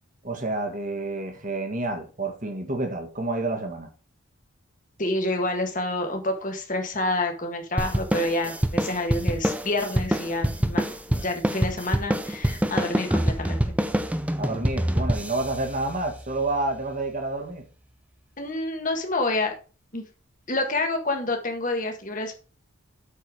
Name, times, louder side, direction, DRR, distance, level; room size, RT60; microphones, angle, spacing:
voice 1, 0.2-3.9 14.4-17.6, right 2 dB, 35° right, 1.7 m, -29 dB
voice 2, 5.0-10.8 11.1-13.7 18.4-19.5 19.9-20.0 20.5-22.4, left 2 dB, 40° left, 1.7 m, -28 dB
sound 1, 7.8-16.6, equal, 5° right, 0.6 m, -26 dB
8.4 x 4.7 x 4.8 m
head